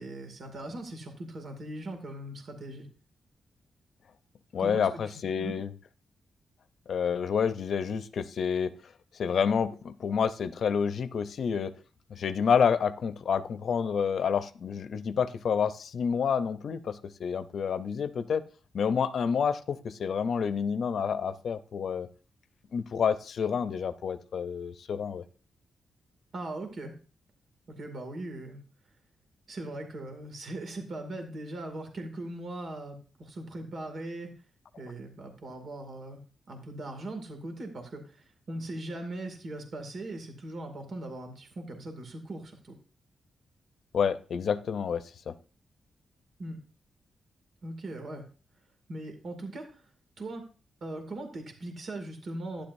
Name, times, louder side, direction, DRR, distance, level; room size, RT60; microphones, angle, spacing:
voice 1, 0.0-2.9 4.6-4.9 5.1-5.6 26.3-26.9 27.7-28.6 29.5-34.3 34.8-36.2 36.5-42.8 46.4-46.6 47.6-48.2 48.9-49.9 50.2-50.5 50.8-52.6, right 1 dB, 65° right, 4 dB, 2.3 m, -39 dB
voice 2, 4.5-5.7 6.9-8.7 9.1-11.7 12.1-18.4 18.7-22.1 22.7-25.2 43.9-45.3, left 6 dB, 70° left, 13 dB, 0.6 m, -29 dB
12.0 x 10.0 x 2.7 m, 0.37 s
cardioid pair, 70°, 0 cm